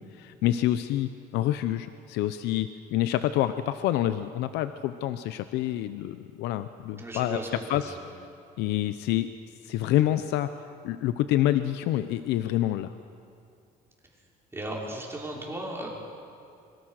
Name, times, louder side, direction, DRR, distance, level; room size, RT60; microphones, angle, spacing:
voice 1, 0.2-7.4 7.7-8.0 8.6-9.3 9.6-10.5 10.8-12.9, left 13 dB, 90° left, 11 dB, 0.8 m, -27 dB
voice 2, 7.0-8.1 14.5-15.9, right 1 dB, 15° right, -3 dB, 5.8 m, -36 dB
25.5 x 23.5 x 6.6 m, 2.5 s
cardioid pair, 110°, 17 cm